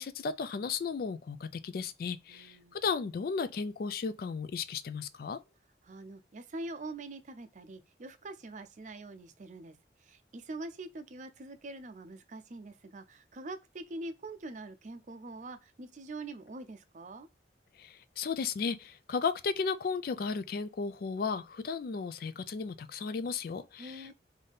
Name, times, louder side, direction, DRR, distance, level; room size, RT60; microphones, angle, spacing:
voice 1, 0.0-5.4 17.8-24.1, left 5 dB, 55° left, 0.3 m, -35 dB
voice 2, 2.3-2.8 5.8-17.3 23.8-24.1, right 2 dB, 45° right, 0.5 m, -44 dB
3.6 x 2.7 x 3.8 m
head